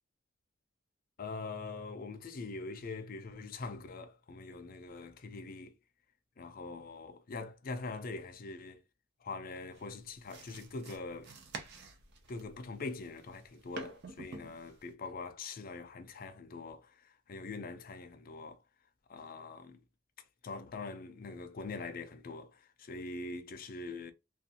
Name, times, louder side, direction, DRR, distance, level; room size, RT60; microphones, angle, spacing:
voice 1, 1.2-5.7 6.4-8.8 9.2-11.3 12.3-18.6 19.1-19.8 20.4-24.1, left 3 dB, 50° left, 0.5 m, -43 dB
sound 1, 9.7-14.9, right 3 dB, 60° right, 0.6 m, -48 dB
2.5 x 2.3 x 2.7 m
head